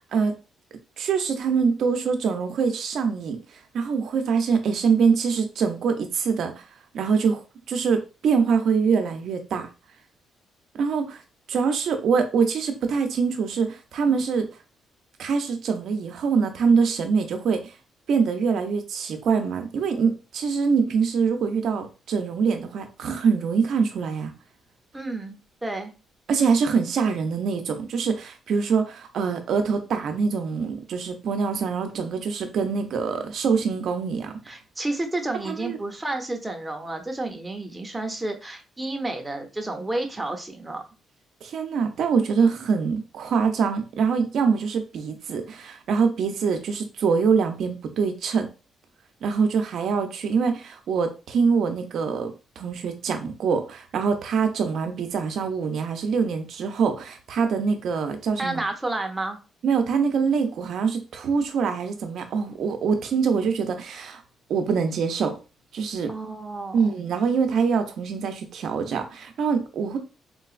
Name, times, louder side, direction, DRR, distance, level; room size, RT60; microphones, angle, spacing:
voice 1, 1.0-3.4 3.7-6.6 6.9-7.4 7.7-9.7 10.7-11.2 11.5-14.5 15.2-17.7 18.1-24.3 26.3-34.3 35.5-35.8 41.4-48.5 49.2-58.7 59.6-64.2 64.5-65.4 65.7-66.1 66.7-70.0, right 5 dB, 70° right, 6 dB, 0.6 m, -24 dB
voice 2, 24.9-25.9 34.5-40.8 58.4-59.4 66.1-67.0, right 2 dB, 15° right, 4 dB, 0.7 m, -31 dB
3.9 x 2.3 x 2.4 m, 0.31 s
cardioid pair, 90°, 0 cm